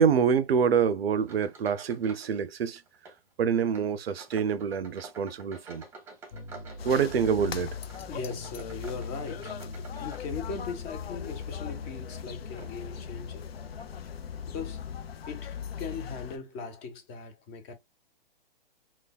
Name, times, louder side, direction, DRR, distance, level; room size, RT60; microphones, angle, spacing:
voice 1, 0.0-2.8 3.4-5.8 6.8-7.8, right 7 dB, 85° right, 0.5 m, -26 dB
sound 1, 1.2-2.4 2.6-3.2 3.7-10.8 11.3-13.1 13.7-14.0 14.5-14.6 15.5-15.6 15.9-16.1, right 3 dB, 10° right, 0.9 m, -50 dB
sound 2, 6.3-15.1, left 3 dB, 70° left, 1.0 m, -43 dB
sound 3, 6.8-16.4, left 8 dB, 85° left, 0.5 m, -40 dB
voice 2, 8.1-9.6 10.0-13.5 14.5-14.8 15.3-17.7, left 5 dB, 25° left, 0.6 m, -39 dB
3.3 x 2.2 x 2.2 m
hypercardioid pair, 125°, 29 cm